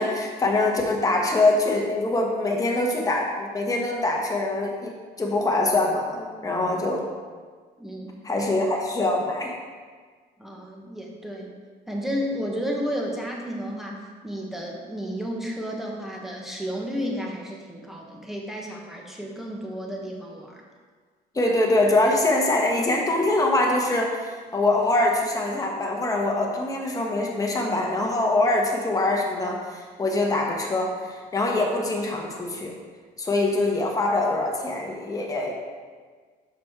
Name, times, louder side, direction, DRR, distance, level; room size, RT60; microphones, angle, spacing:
voice 1, 0.0-7.0 8.2-9.5 21.3-32.7 33.2-35.5, left 2 dB, 20° left, -1 dB, 1.3 m, -24 dB
voice 2, 7.8-8.1 10.4-11.5 11.9-20.6, equal, ahead, -2 dB, 1.2 m, -32 dB
6.3 x 5.9 x 3.7 m, 1.5 s
cardioid pair, 110°, 17 cm